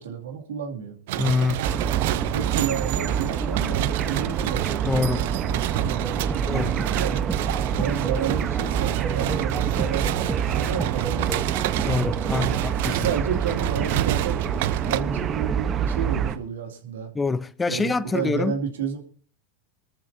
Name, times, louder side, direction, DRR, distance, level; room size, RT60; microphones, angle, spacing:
voice 1, 0.0-1.0 2.2-7.3 7.7-11.4 12.3-17.1 17.7-19.0, right 7 dB, 85° right, 2.7 m, -31 dB
sound 1, 1.1-15.0, right 14 dB, 70° right, 0.6 m, -30 dB
voice 2, 1.2-1.6 4.8-5.3 6.5-6.7 11.8-13.1 17.1-18.6, left 4 dB, 15° left, 0.7 m, -25 dB
sound 2, 1.6-16.4, right 8 dB, 35° right, 1.1 m, -27 dB
sound 3, 6.0-12.6, right 4 dB, 15° right, 0.8 m, -34 dB
24.0 x 13.5 x 2.8 m
hypercardioid pair, 105°, 0 cm